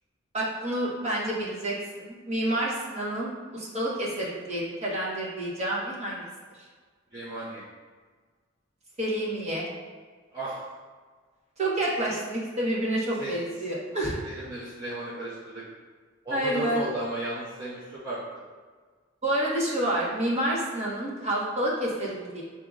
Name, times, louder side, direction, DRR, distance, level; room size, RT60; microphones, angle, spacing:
voice 1, 0.3-6.3 9.0-9.7 11.6-14.1 16.3-16.8 19.2-22.4, right 1 dB, 35° right, -6 dB, 1.1 m, -29 dB
voice 2, 7.1-7.6 10.3-10.6 13.2-13.4 14.2-15.6 16.2-18.2, right 1 dB, 20° right, -11 dB, 0.8 m, -34 dB
7.5 x 2.8 x 2.4 m, 1.5 s
head